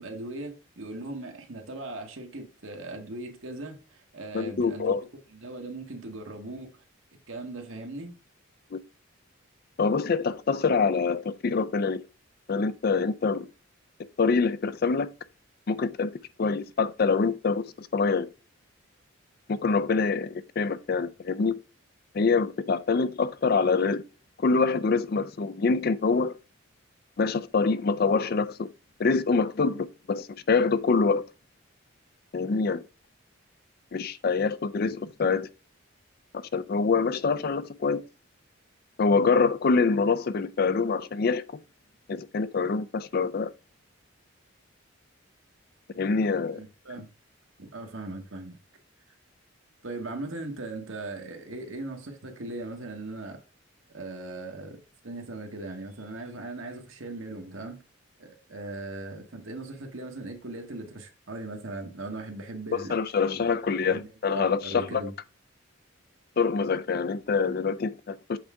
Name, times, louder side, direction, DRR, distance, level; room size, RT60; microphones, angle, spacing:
voice 1, 0.0-5.0 5.3-6.8 7.3-8.2 46.5-47.1 47.6-48.6 49.8-53.4 53.9-57.8 58.2-63.0 63.4-65.1, right 2 dB, 75° right, 1.2 m, -39 dB
voice 2, 4.3-5.0 8.7-8.8 9.8-12.0 12.5-13.5 14.2-15.1 15.7-16.1 16.4-18.3 19.5-21.6 22.1-24.0 24.4-26.3 27.2-28.7 29.0-31.2 32.3-32.8 33.9-35.5 36.5-38.0 39.0-41.4 42.1-43.5 46.0-46.6 62.7-65.0 66.4-68.4, left 4 dB, 45° left, 0.4 m, -25 dB
7.9 x 4.6 x 3.6 m
head